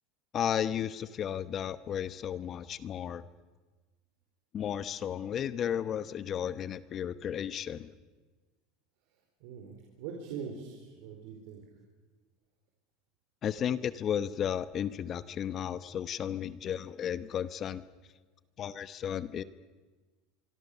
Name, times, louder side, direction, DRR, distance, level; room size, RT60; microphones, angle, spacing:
voice 1, 0.3-3.2 4.5-7.9 13.4-17.8 18.6-19.4, left 9 dB, 40° left, 15 dB, 0.9 m, -34 dB
voice 2, 9.4-11.6, right 6 dB, 70° right, 1 dB, 4.4 m, -42 dB
25.5 x 24.5 x 6.8 m, 1.3 s
supercardioid pair, 115°, 0 cm